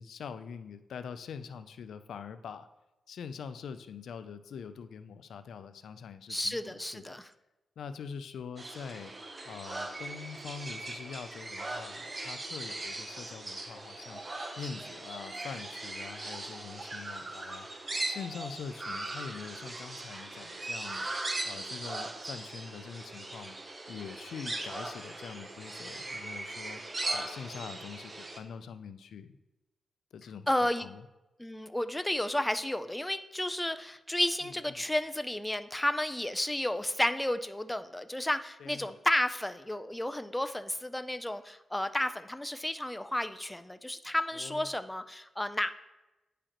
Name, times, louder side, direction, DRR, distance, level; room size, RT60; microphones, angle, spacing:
voice 1, 0.0-2.7 3.1-7.2 7.8-9.1 9.4-14.2 14.6-17.7 18.1-21.1 21.4-23.6 23.9-26.8 27.1-29.4 30.1-31.1 34.4-34.8 38.6-38.9 44.3-44.7, left 6 dB, 80° left, 11 dB, 0.4 m, -44 dB
voice 2, 6.3-7.3 30.5-30.9 31.4-45.7, left 1 dB, 10° left, 11 dB, 0.4 m, -32 dB
sound 1, 8.6-28.4, right 2 dB, 30° right, 0.7 m, -39 dB
9.7 x 4.9 x 2.9 m, 1.0 s
cardioid pair, 105°, 0 cm